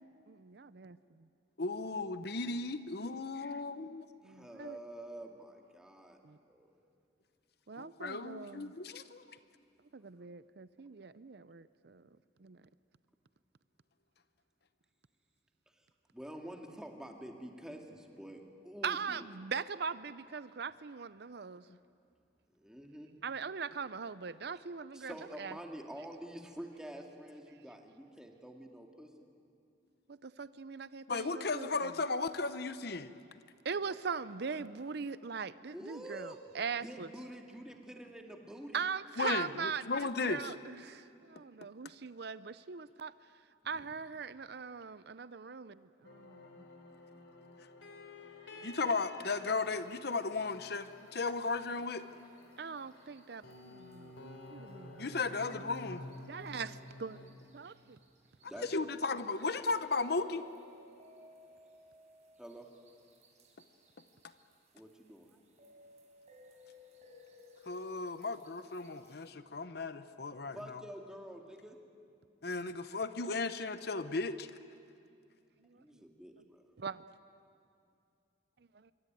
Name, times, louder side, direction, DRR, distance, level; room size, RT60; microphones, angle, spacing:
voice 1, 0.3-1.3 4.2-4.8 6.2-6.4 7.7-8.7 9.9-12.0 12.4-12.6 18.8-21.6 23.2-25.6 30.1-31.9 33.6-37.1 38.7-43.1 43.6-46.7 48.5-49.0 52.6-55.6 56.3-57.2 57.5-58.0 75.6-75.8 76.8-77.0, right 5 dB, 60° right, 15 dB, 0.6 m, -41 dB
voice 2, 1.6-4.1 7.8-9.4 21.7-21.8 31.1-33.1 39.2-40.5 48.6-52.1 55.0-56.0 58.6-60.4 67.7-70.8 72.4-74.5, left 3 dB, 55° left, 12 dB, 0.9 m, -35 dB
voice 3, 4.2-6.2 6.5-6.7 15.7-15.9 16.1-19.3 22.6-23.1 23.8-23.9 24.5-24.6 24.9-29.1 35.7-36.4 36.8-38.8 43.7-43.9 54.2-55.1 58.4-58.7 62.4-62.7 64.7-65.4 70.5-71.8 75.8-76.7, right 1 dB, 5° right, 2 dB, 2.2 m, -48 dB
sound 1, 46.0-57.3, left 2 dB, 80° left, 3.4 m, -52 dB
sound 2, 49.4-69.3, left 2 dB, 40° right, 4.7 m, -61 dB
26.0 x 23.5 x 9.3 m, 2.5 s
head